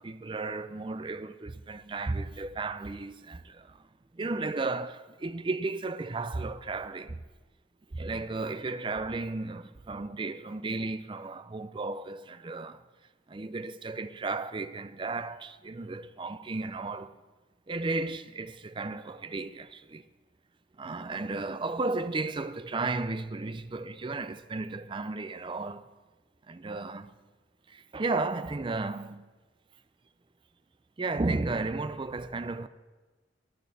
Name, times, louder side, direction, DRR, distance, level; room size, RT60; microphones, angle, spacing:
voice 1, 0.0-3.8 4.1-7.2 7.9-12.8 13.3-17.2 17.7-20.1 20.8-25.9 26.5-27.1 27.7-29.3 31.0-32.7, right 3 dB, 25° right, 0.5 m, -34 dB
19.5 x 10.5 x 4.1 m
head